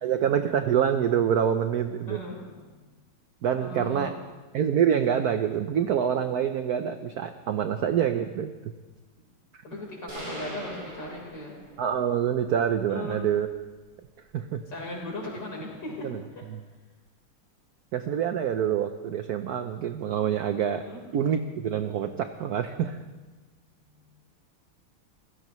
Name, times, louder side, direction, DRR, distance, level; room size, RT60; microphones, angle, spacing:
voice 1, 0.0-2.2 3.4-4.2 4.5-8.7 11.8-13.5 14.3-14.6 16.0-16.2 16.5-16.6 17.9-20.9 21.1-23.0, right 9 dB, 70° right, 8 dB, 0.9 m, -26 dB
voice 2, 2.1-2.6 3.6-4.2 9.6-11.5 12.9-13.2 14.7-16.4 20.8-21.0, left 1 dB, 55° left, -2 dB, 4.8 m, -37 dB
sound 1, 10.1-12.0, equal, 25° right, 6.3 m, -40 dB
26.0 x 16.0 x 3.1 m, 1.2 s
omnidirectional pair, 2.4 m